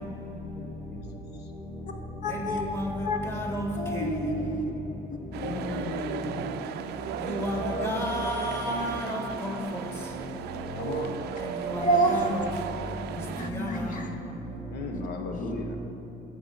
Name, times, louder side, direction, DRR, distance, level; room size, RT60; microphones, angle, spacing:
voice 1, 0.5-1.1 1.3-1.5 5.3-7.0 10.7-11.3 14.7-15.8, left 3 dB, 75° left, 4 dB, 1.0 m, -36 dB
voice 2, 2.2-2.6 3.0-3.2 3.7-4.7 7.7-7.9 11.8-12.3 13.4-14.1 14.9-15.0 15.3-15.5, equal, 50° left, 4 dB, 1.0 m, -29 dB
voice 3, 3.3-3.7 7.3-7.6 7.8-9.5 11.7-11.8 12.1-12.3 13.5-13.7, equal, 15° left, -1 dB, 1.8 m, -31 dB
sound 1, 5.3-13.5, right 8 dB, 75° right, 0.4 m, -35 dB
8.5 x 6.8 x 5.6 m, 2.9 s
cardioid pair, 110°, 17 cm